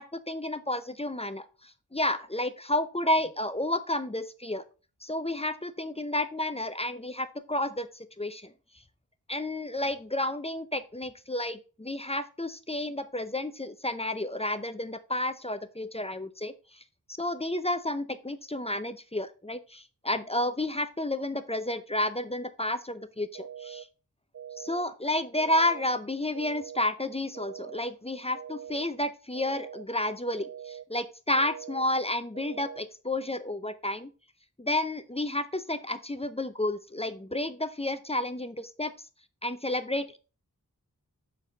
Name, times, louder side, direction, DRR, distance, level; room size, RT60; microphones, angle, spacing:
voice 1, 0.0-4.6 5.0-8.5 9.3-16.8 17.2-23.9 24.6-30.5 30.9-34.1 34.6-38.9 39.4-40.2, left 1 dB, 15° left, 11 dB, 0.6 m, -31 dB
sound 1, 23.3-23.8 24.3-24.8 25.3-25.8 26.3-26.8 27.3-27.8 28.3-28.8 29.3-29.8 30.3-30.8 31.3-31.8 32.3-32.8, right 9 dB, 50° right, 0.4 m, -43 dB
7.2 x 4.2 x 3.9 m, 0.34 s
wide cardioid pair, 45°, 35 cm